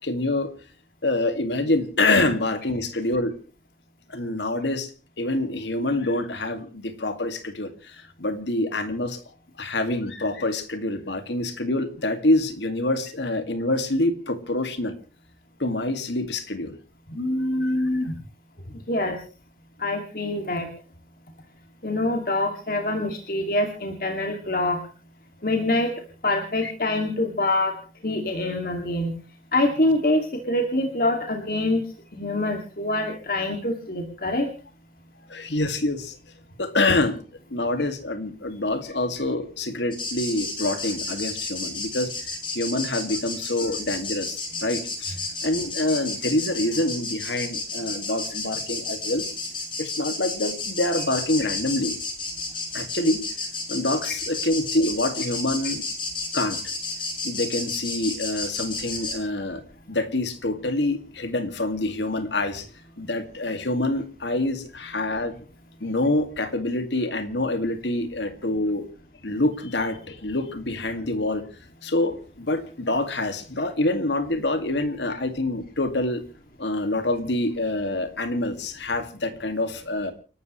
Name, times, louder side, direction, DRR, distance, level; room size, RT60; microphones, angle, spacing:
voice 1, 0.0-0.5 1.0-3.4 4.1-4.9 5.2-9.2 9.6-15.0 15.6-16.8 17.6-17.9 26.6-26.7 35.3-36.2 36.6-37.2 37.5-49.2 49.8-52.0 52.7-53.2 53.7-55.8 56.3-56.6 57.2-59.6 59.9-62.7 63.0-65.4 65.8-68.9 69.2-71.4 71.8-76.2 76.6-80.1, left 2 dB, 85° left, 9 dB, 2.1 m, -26 dB
voice 2, 17.1-18.2 18.9-19.2 19.8-20.7 21.8-24.8 25.4-25.9 26.2-27.7 28.0-29.1 29.5-34.5, left 1 dB, 50° left, 3 dB, 2.3 m, -25 dB
sound 1, 39.9-59.1, left 3 dB, 30° left, 6.0 m, -32 dB
29.5 x 12.5 x 3.2 m, 0.36 s
head